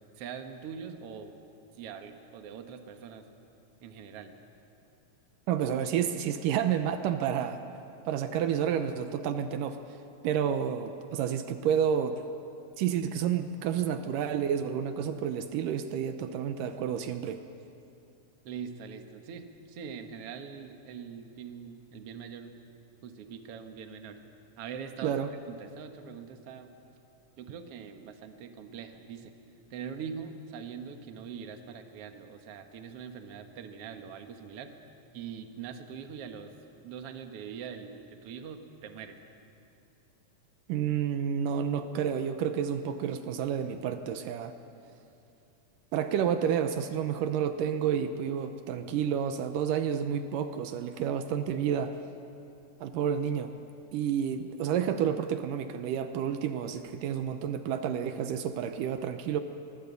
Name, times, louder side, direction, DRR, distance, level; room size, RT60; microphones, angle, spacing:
voice 1, 0.2-1.4 1.8-3.3 3.8-4.4 18.4-22.6 23.0-24.2 24.6-26.7 27.4-29.4 29.7-34.7 35.1-36.5 36.8-39.2, right 7 dB, 55° right, 5 dB, 2.1 m, -43 dB
voice 2, 5.5-7.6 8.1-9.8 10.2-12.2 12.8-17.4 25.0-25.3 40.7-44.5 45.9-52.0 52.8-53.5 53.9-59.4, right 8 dB, 80° right, 8 dB, 2.4 m, -30 dB
23.5 x 19.5 x 8.3 m, 2.7 s
omnidirectional pair, 3.9 m